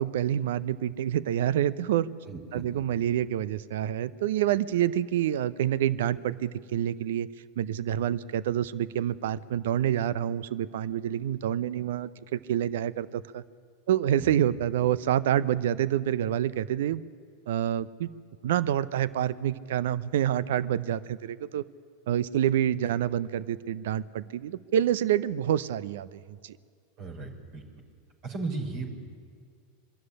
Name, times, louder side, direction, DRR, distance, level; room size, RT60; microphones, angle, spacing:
voice 1, 0.0-2.1 2.5-7.3 7.6-13.4 13.9-17.0 17.5-18.1 18.4-21.6 22.1-26.6, right 11 dB, 65° right, 18 dB, 0.6 m, -27 dB
voice 2, 2.2-3.0 14.2-14.3 27.0-27.6 28.2-28.9, right 3 dB, 50° right, 2 dB, 4.8 m, -36 dB
23.5 x 13.0 x 9.8 m, 2.2 s
figure-of-eight pair, 90°, 0 cm